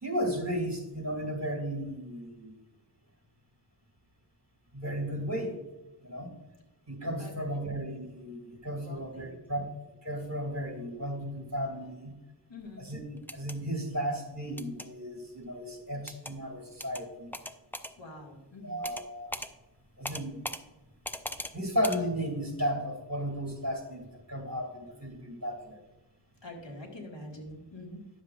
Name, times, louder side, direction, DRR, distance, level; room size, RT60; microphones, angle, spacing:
voice 1, 0.0-2.5 4.7-5.6 6.0-6.3 6.9-9.7 10.0-12.1 12.8-13.0 13.3-17.3 18.6-19.4 20.0-20.4 21.5-25.8, equal, 40° right, 2 dB, 2.3 m, -34 dB
voice 2, 7.2-7.6 8.8-9.3 12.5-12.9 18.0-18.8 26.4-28.0, left 1 dB, 80° left, 0 dB, 1.8 m, -45 dB
sound 1, 13.2-13.6 14.6-14.9 16.1-16.3 16.8-17.0 17.3-17.9 18.8-19.1 19.3-19.5 20.0-20.6 21.0-21.5 21.8-22.0, left 1 dB, 5° left, 0.5 m, -38 dB
10.5 x 7.6 x 2.4 m, 1.1 s
wide cardioid pair, 45°, 43 cm